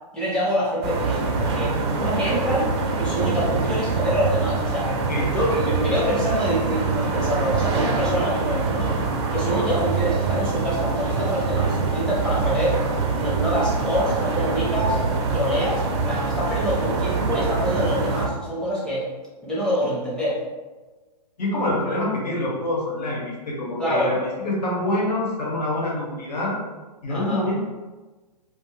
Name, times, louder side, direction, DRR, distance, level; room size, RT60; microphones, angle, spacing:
voice 1, 0.1-2.7 3.0-4.9 5.3-8.9 9.3-12.8 13.1-15.0 15.3-19.1 19.4-20.4 23.8-24.1 27.1-27.4, equal, 5° left, -8 dB, 0.6 m, -25 dB
sound 1, 0.8-18.3, right 4 dB, 40° right, 0.5 m, -24 dB
voice 2, 21.4-26.6 27.0-27.6, left 1 dB, 75° left, -2 dB, 1.0 m, -26 dB
2.4 x 2.3 x 3.0 m, 1.2 s
hypercardioid pair, 145°, 21 cm